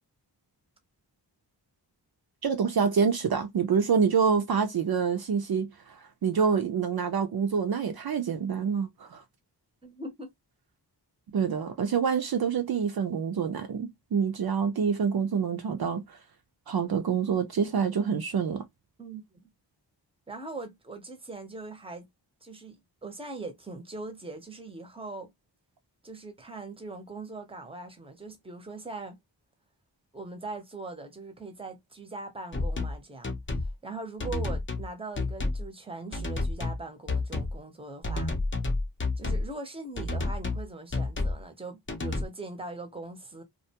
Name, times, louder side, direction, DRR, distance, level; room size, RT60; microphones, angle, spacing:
voice 1, 2.4-9.2 11.3-16.2 16.7-18.6, right 6 dB, 60° right, 0.5 m, -27 dB
voice 2, 9.8-10.3 19.0-19.5 20.3-22.1 22.4-25.3 26.0-29.2 30.1-38.3 39.2-43.4, right 2 dB, 15° right, 0.7 m, -41 dB
sound 1, 32.5-33.0 33.2-33.7 34.2-34.9 35.2-35.7 36.1-36.8 37.1-37.6 38.0-39.5 40.0-40.7 40.9-41.4 41.9-42.2, left 2 dB, 30° left, 0.6 m, -30 dB
2.4 x 2.2 x 2.8 m
wide cardioid pair, 90°, 43 cm